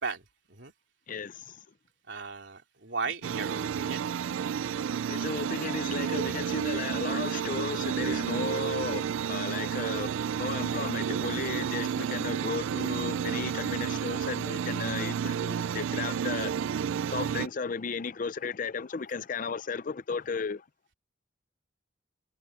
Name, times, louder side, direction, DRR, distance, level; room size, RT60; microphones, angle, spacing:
voice 1, 1.1-1.4 5.1-16.5 17.1-20.6, left 5 dB, 45° left, 0.5 m, -35 dB
voice 2, 2.1-4.0, right 4 dB, 65° right, 3.3 m, -36 dB
sound 1, 3.2-17.5, right 8 dB, 85° right, 0.3 m, -31 dB
head